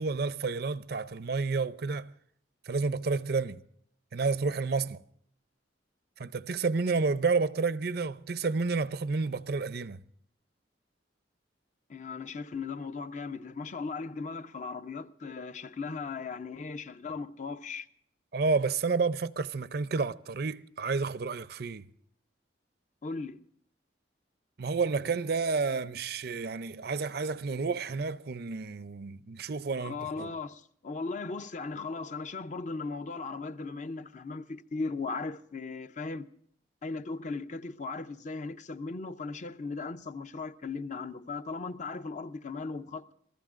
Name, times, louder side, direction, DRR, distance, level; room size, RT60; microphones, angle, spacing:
voice 1, 0.0-2.1 2.7-3.6 4.1-5.0 6.2-10.0 18.3-21.9 24.6-30.3, right 4 dB, 60° right, 0.5 m, -30 dB
voice 2, 11.9-17.9 23.0-23.4 29.8-36.3 36.8-43.1, left 4 dB, 40° left, 0.6 m, -37 dB
28.0 x 15.5 x 2.5 m
head